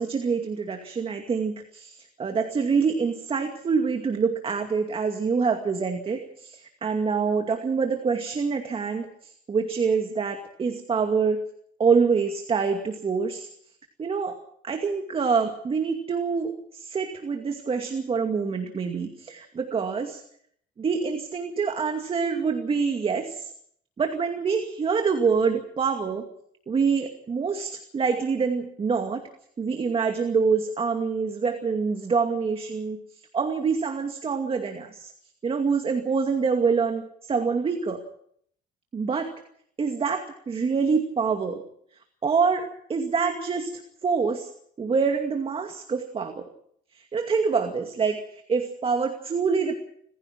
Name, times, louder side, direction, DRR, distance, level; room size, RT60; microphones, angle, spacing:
voice 1, 0.0-11.4 11.8-13.5 14.0-14.3 14.6-20.2 20.8-23.5 24.0-26.2 26.7-29.2 29.6-33.0 33.3-35.1 35.4-38.0 38.9-39.3 39.8-41.6 42.2-43.7 44.0-44.5 44.8-46.4 46.9-48.2 48.5-49.7, right 5 dB, 35° right, 5 dB, 2.4 m, -26 dB
28.5 x 15.5 x 6.1 m, 0.66 s
cardioid pair, 110°, 17 cm